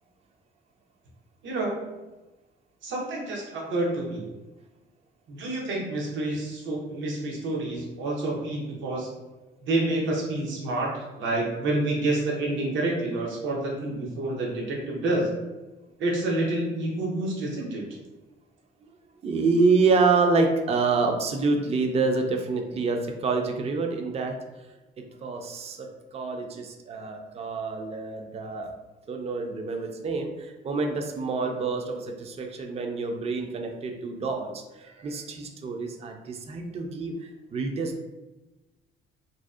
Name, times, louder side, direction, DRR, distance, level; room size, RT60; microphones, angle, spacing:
voice 1, 1.4-1.9 2.8-4.2 5.3-9.1 9.6-10.9 11.2-15.3 16.0-17.8, right 2 dB, 75° right, -2 dB, 0.7 m, -28 dB
voice 2, 19.2-24.3 25.0-28.7 29.1-37.1 37.5-38.0, right 4 dB, 30° right, 4 dB, 0.3 m, -27 dB
2.6 x 2.0 x 2.3 m, 1.1 s
cardioid pair, 90°, 20 cm